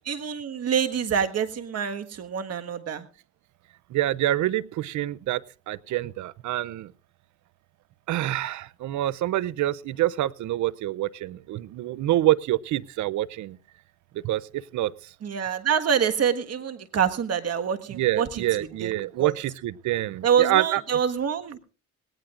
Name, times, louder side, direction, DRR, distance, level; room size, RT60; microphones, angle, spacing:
voice 1, 0.0-3.0 15.2-19.4 20.2-21.6, right 8 dB, 55° right, 7 dB, 1.6 m, -26 dB
voice 2, 3.9-5.4 5.7-6.9 8.1-13.6 14.1-15.1 17.9-20.8, right 14 dB, 70° right, 21 dB, 0.6 m, -26 dB
18.5 x 18.5 x 2.5 m, 0.35 s
cardioid pair, 90°, 30 cm